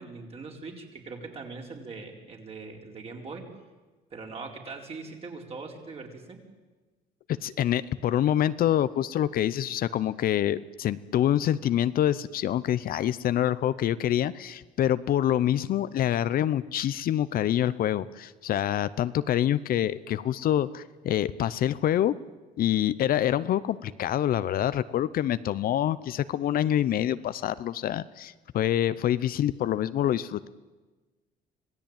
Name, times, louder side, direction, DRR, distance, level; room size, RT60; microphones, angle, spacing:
voice 1, 0.0-3.5 4.1-6.4, right 4 dB, 35° right, 1 dB, 4.4 m, -41 dB
voice 2, 7.3-22.2 22.6-30.5, left 11 dB, 60° left, 15 dB, 0.8 m, -26 dB
26.0 x 17.0 x 9.0 m, 1.3 s
cardioid pair, 110°, 17 cm